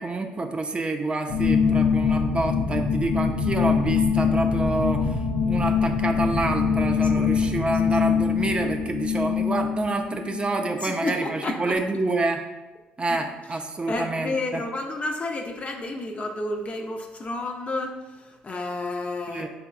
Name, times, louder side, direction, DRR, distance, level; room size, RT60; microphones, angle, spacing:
voice 1, 0.0-12.4 13.0-14.6 19.3-19.5, right 2 dB, 25° right, 5 dB, 0.5 m, -27 dB
sound 1, 1.3-10.8, left 6 dB, 75° left, 0.6 m, -23 dB
voice 2, 10.8-11.7 13.1-13.2 13.9-19.5, left 2 dB, 35° left, 3 dB, 0.6 m, -31 dB
5.4 x 3.5 x 2.4 m, 1.1 s
supercardioid pair, 65°, 4 cm